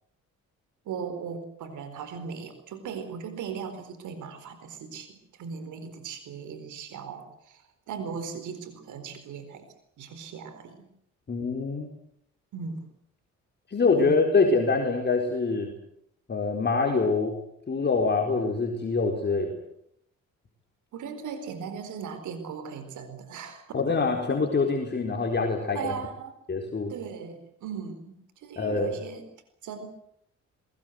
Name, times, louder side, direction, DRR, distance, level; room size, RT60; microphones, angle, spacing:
voice 1, 0.8-7.6 7.9-9.7 10.0-10.9 12.5-12.9 14.0-14.3 20.9-23.8 25.7-26.4 26.9-29.3 29.6-29.9, right 6 dB, 80° right, 10 dB, 4.3 m, -38 dB
voice 2, 11.3-11.9 13.7-15.7 16.3-17.3 17.7-19.5 23.7-25.9 26.5-26.9 28.6-28.9, left 4 dB, 35° left, 1 dB, 4.5 m, -25 dB
25.0 x 21.0 x 8.0 m, 0.72 s
cardioid pair, 90°, 30 cm